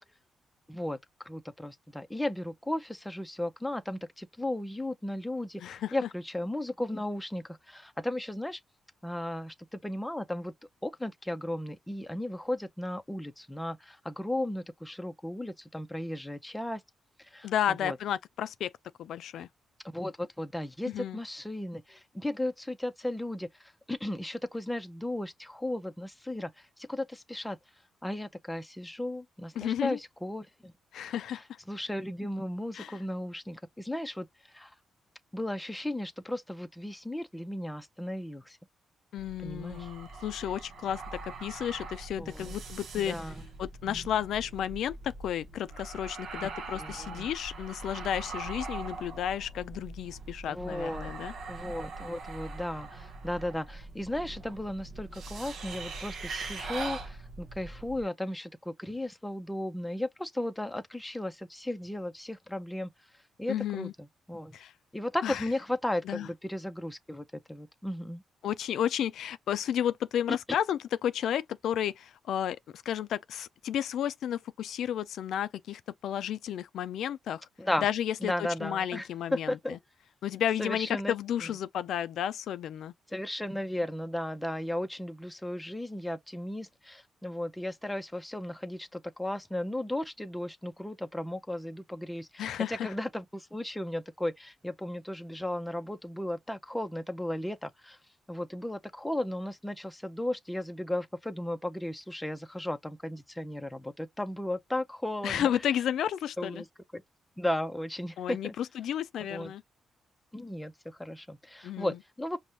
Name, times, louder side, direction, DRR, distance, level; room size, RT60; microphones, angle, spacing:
voice 1, 0.7-1.0 1.2-8.6 9.0-10.5 10.8-16.8 17.2-17.5 17.8-18.0 19.9-26.5 26.8-27.6 28.0-30.7 31.7-34.3 34.5-34.7 35.3-38.6 39.4-39.9 42.2-42.5 43.0-43.3 46.7-47.3 50.5-51.1 51.5-62.9 63.4-63.9 64.3-64.5 64.9-68.2 77.6-77.9 78.2-79.8 80.6-81.1 83.1-98.0 98.3-105.5 106.4-106.7 106.9-107.0 107.4-108.5 109.3-109.5 110.3-112.4, left 1 dB, 10° left, 0.5 m, -35 dB
voice 2, 5.6-6.1 17.4-18.7 19.0-19.5 20.9-21.2 29.6-30.0 30.9-31.4 32.7-33.0 39.1-43.2 43.6-51.3 63.5-63.9 64.5-64.7 65.2-65.4 66.0-66.3 68.4-77.5 77.8-79.8 80.2-82.9 92.4-92.9 105.2-106.6 108.2-109.6 111.6-112.0, left 10 dB, 80° left, 0.4 m, -32 dB
sound 1, 39.2-58.0, right 3 dB, 70° right, 0.8 m, -42 dB
5.2 x 2.1 x 3.0 m
cardioid pair, 75°, 0 cm